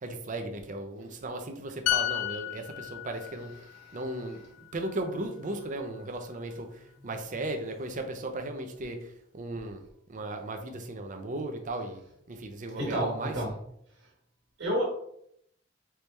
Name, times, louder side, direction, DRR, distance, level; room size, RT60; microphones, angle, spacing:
voice 1, 0.0-3.5 3.9-4.4 4.7-6.7 7.0-9.0 9.3-9.8 10.1-12.0 12.3-13.3, right 2 dB, 40° right, 5 dB, 0.6 m, -36 dB
sound 1, 1.9-5.5 5.8-6.0, left 13 dB, 85° left, 0.4 m, -34 dB
voice 2, 3.6-4.5 7.0-7.4 12.7-13.5 14.0-14.1 14.6-14.8, equal, 65° right, -3 dB, 1.5 m, -33 dB
4.5 x 3.3 x 3.3 m, 0.72 s
head